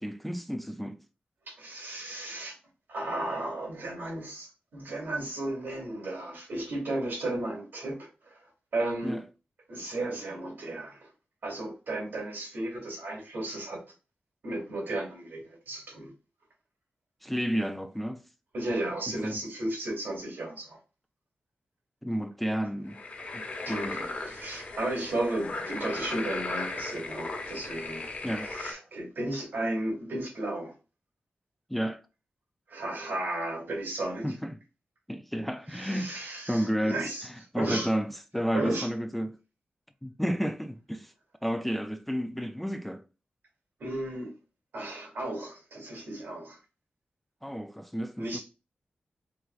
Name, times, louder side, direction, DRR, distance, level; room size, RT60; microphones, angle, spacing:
voice 1, 0.0-1.0 9.0-9.2 17.2-18.2 19.2-19.4 22.0-23.0 23.3-24.0 28.2-28.5 31.7-32.0 34.2-34.6 35.1-39.4 40.0-41.1 41.4-43.0 47.4-48.4, equal, 5° left, 0.3 m, -31 dB
voice 2, 1.5-2.5 2.9-9.2 9.7-11.1 11.4-13.8 14.4-16.1 18.5-20.8 23.7-28.1 28.4-30.7 32.7-34.3 35.7-37.3 37.5-37.9 38.5-38.9 43.8-44.3 44.7-46.6 48.2-48.4, right 1 dB, 85° right, 2.5 m, -34 dB
sound 1, 22.9-28.7, left 3 dB, 50° left, 1.1 m, -37 dB
4.6 x 3.7 x 2.3 m
wide cardioid pair, 125°, 3 cm